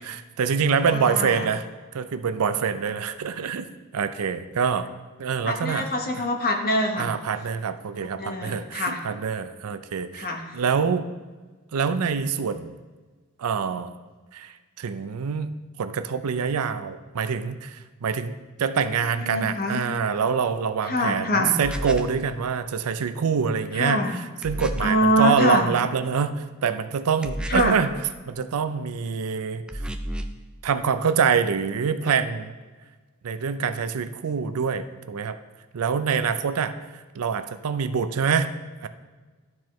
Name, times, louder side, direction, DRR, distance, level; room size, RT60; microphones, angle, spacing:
voice 1, 0.0-1.6 1.9-3.7 3.9-4.9 5.2-5.9 7.0-10.3 10.5-11.1 11.7-12.7 13.4-13.9 14.3-15.5 15.8-18.3 18.6-27.9 28.3-29.8 30.6-32.5 33.2-35.4 35.7-38.5 38.8-38.9, right 6 dB, 70° right, 10 dB, 0.5 m, -25 dB
voice 2, 0.9-1.5 5.4-7.1 8.2-9.0 10.2-10.4 19.2-19.8 20.9-21.5 23.7-24.2 24.8-25.7 27.5-27.8, left 1 dB, 45° left, 3 dB, 1.0 m, -24 dB
sound 1, 21.6-22.2 24.4-25.0 27.2-27.9 29.7-30.4, right 1 dB, 5° right, 0.3 m, -32 dB
12.5 x 4.4 x 3.1 m, 1.3 s
head